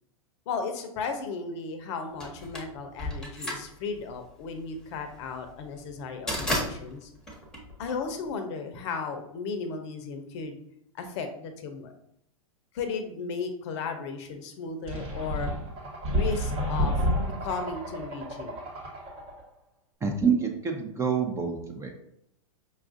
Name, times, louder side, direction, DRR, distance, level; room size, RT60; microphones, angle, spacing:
voice 1, 0.5-7.1 7.8-10.6 10.9-11.9 12.7-15.5 16.1-17.0 17.4-18.5, left 4 dB, 55° left, 6 dB, 0.7 m, -35 dB
sound 1, 2.2-8.3, left 1 dB, 5° left, 1.0 m, -34 dB
sound 2, 14.9-19.4, equal, 30° right, 1.0 m, -30 dB
voice 2, 20.0-21.9, right 6 dB, 15° right, 3 dB, 0.6 m, -27 dB
5.3 x 2.4 x 2.5 m, 0.74 s
hypercardioid pair, 110°, 18 cm